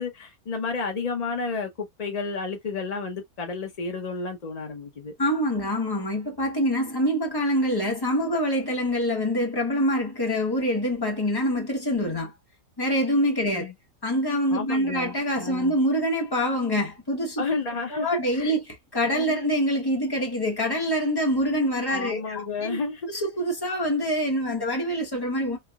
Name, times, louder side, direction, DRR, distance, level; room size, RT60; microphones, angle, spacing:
voice 1, 0.0-5.1 13.4-13.7 14.5-15.7 17.4-18.6 19.1-19.4 21.9-23.2, left 4 dB, 45° left, 0.5 m, -31 dB
voice 2, 5.2-12.3 12.8-13.7 14.0-17.5 17.9-22.8 23.1-25.6, equal, 20° left, 1.0 m, -25 dB
3.4 x 3.0 x 2.3 m
omnidirectional pair, 1.6 m